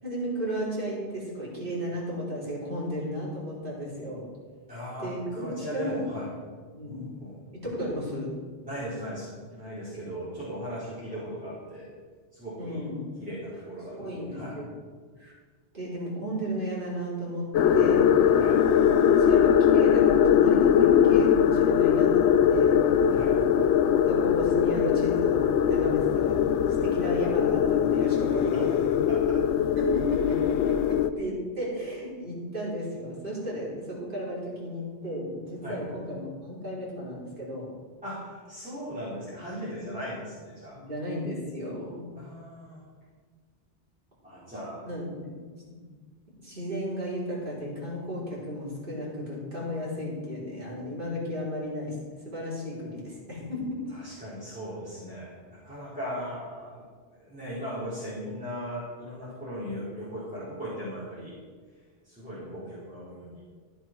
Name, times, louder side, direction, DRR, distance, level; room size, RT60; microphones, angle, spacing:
voice 1, 0.0-4.3 5.0-6.0 6.7-7.1 7.5-8.3 12.6-13.0 13.9-14.6 15.2-15.3 15.7-18.4 18.8-23.1 24.1-28.7 29.8-37.7 40.7-42.2 44.8-45.4 45.7-45.8 46.4-52.0 52.2-54.0, equal, 50° right, -7 dB, 4.6 m, -34 dB
voice 2, 4.7-6.3 6.8-7.3 8.6-11.9 12.3-12.8 13.2-14.6 18.3-18.6 23.1-23.4 28.5-28.6 29.1-29.4 35.6-35.8 38.0-40.8 42.1-42.8 44.2-44.8 53.9-56.8 57.1-61.4 62.0-63.4, equal, 5° right, -12 dB, 4.5 m, -38 dB
sound 1, 17.5-31.1, left 8 dB, 80° left, 0.9 m, -21 dB
15.0 x 9.0 x 4.7 m, 1.5 s
omnidirectional pair, 1.1 m